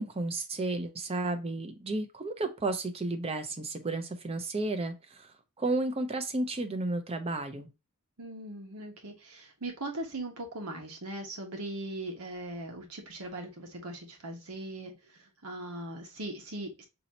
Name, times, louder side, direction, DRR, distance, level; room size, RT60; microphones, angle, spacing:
voice 1, 0.0-7.7, right 2 dB, 25° right, 0.5 m, -33 dB
voice 2, 8.2-15.0 15.4-16.9, right 1 dB, 80° right, 1.2 m, -39 dB
4.0 x 2.8 x 2.8 m
head